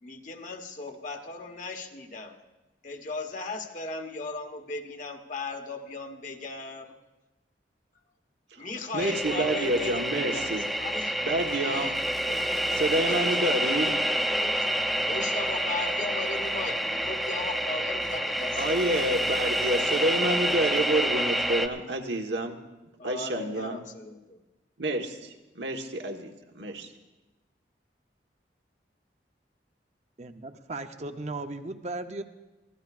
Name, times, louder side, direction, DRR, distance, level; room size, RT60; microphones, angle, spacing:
voice 1, 0.0-2.3 2.8-6.9 8.6-14.7 15.0-19.3 23.0-24.4, left 3 dB, 45° left, 4 dB, 1.1 m, -38 dB
voice 2, 8.9-10.6 11.2-12.0 12.7-13.9 18.6-22.6 23.0-23.8 24.8-25.3 25.6-26.9, right 1 dB, 90° right, 3 dB, 1.3 m, -28 dB
sound 1, 9.0-21.7, equal, ahead, 0.5 m, -28 dB
voice 3, 30.2-32.2, right 2 dB, 40° right, 7 dB, 0.7 m, -36 dB
23.5 x 16.0 x 2.4 m, 1.1 s
head